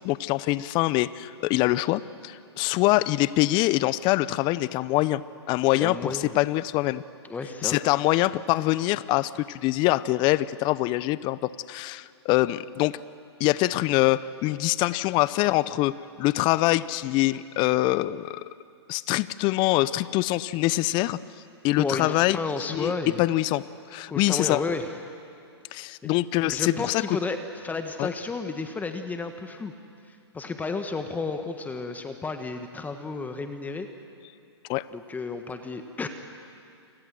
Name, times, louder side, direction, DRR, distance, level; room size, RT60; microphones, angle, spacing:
voice 1, 0.0-5.2 5.5-7.0 7.6-13.0 13.4-15.9 16.2-18.4 18.9-21.2 21.6-22.4 22.7-22.9 23.2-23.6 23.9-24.6 25.7-27.2 28.0-28.1 34.7-34.9, left 17 dB, 35° left, 18 dB, 0.8 m, -24 dB
voice 2, 5.8-6.4 7.3-7.8 21.8-23.2 24.1-24.9 26.0-26.1 26.4-27.4 27.6-29.7 30.1-33.9 34.9-36.1, left 4 dB, 10° left, 7 dB, 1.5 m, -32 dB
30.0 x 25.0 x 7.8 m, 2.4 s
hypercardioid pair, 120°, 14 cm